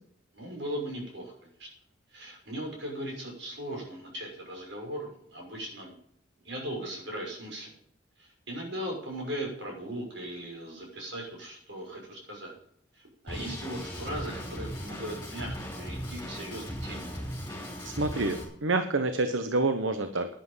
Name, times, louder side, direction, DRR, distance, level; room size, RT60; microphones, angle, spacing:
voice 1, 0.3-1.7 2.1-6.0 6.4-7.7 8.2-12.5 12.9-17.1, right 1 dB, 70° right, 0 dB, 6.1 m, -38 dB
Drum kit, 13.3-18.4, equal, 15° left, 4.6 m, -38 dB
voice 2, 17.8-20.3, right 2 dB, 85° right, 8 dB, 1.0 m, -28 dB
11.5 x 10.5 x 5.6 m, 0.67 s
head